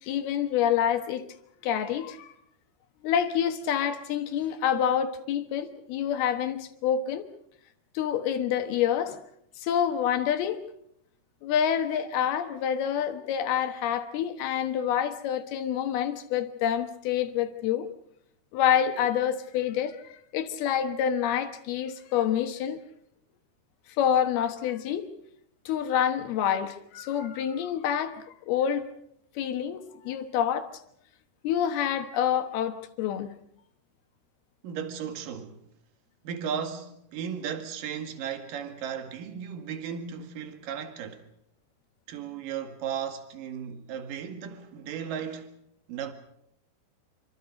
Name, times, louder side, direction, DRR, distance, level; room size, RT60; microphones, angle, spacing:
voice 1, 0.0-1.3 1.6-2.3 3.0-7.3 7.9-9.2 9.6-10.6 11.4-17.9 18.5-22.8 24.0-25.1 25.7-28.9 29.4-30.7 31.4-33.3, left 9 dB, 70° left, 3.1 m, -27 dB
voice 2, 34.6-35.7 36.2-41.2 42.1-45.5 45.9-46.1, right 8 dB, 60° right, 3.3 m, -35 dB
27.0 x 25.0 x 5.2 m
omnidirectional pair, 4.9 m